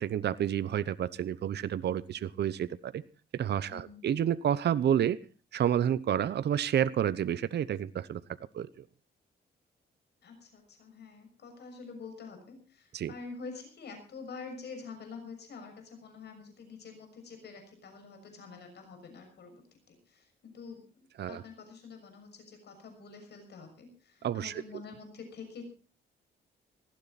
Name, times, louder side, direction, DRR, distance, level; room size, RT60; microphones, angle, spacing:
voice 1, 0.0-3.0 3.3-5.2 5.5-8.2 8.5-8.8 12.9-13.1 21.2-21.4 24.2-24.6, right 9 dB, 60° right, 15 dB, 0.9 m, -29 dB
voice 2, 3.7-4.1 10.2-25.6, left 4 dB, 65° left, 6 dB, 6.5 m, -47 dB
19.0 x 15.5 x 4.2 m, 0.35 s
cardioid pair, 125°, 19 cm